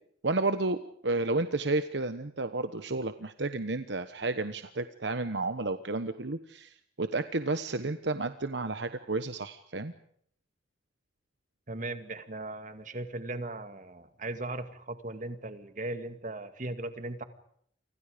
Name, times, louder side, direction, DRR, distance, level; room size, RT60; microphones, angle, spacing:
voice 1, 0.2-9.9, right 2 dB, 65° right, 10 dB, 1.2 m, -31 dB
voice 2, 11.7-17.2, right 2 dB, 40° right, 9 dB, 2.2 m, -38 dB
29.5 x 25.5 x 5.2 m, 0.66 s
head